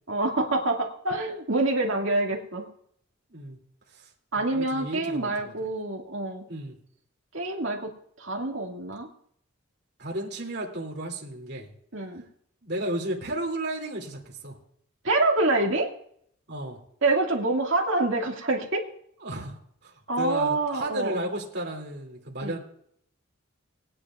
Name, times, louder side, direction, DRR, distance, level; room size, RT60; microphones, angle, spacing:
voice 1, 0.1-2.7 4.3-6.4 7.3-7.9 8.2-9.1 11.9-12.2 15.0-15.9 17.0-18.8 20.1-21.3 22.4-22.6, right 2 dB, 65° right, 1 dB, 2.0 m, -26 dB
voice 2, 4.4-5.5 6.5-6.8 10.0-11.7 12.6-14.6 16.5-16.8 19.2-22.6, right 1 dB, 50° right, -1 dB, 2.6 m, -33 dB
20.5 x 9.8 x 2.4 m, 0.67 s
head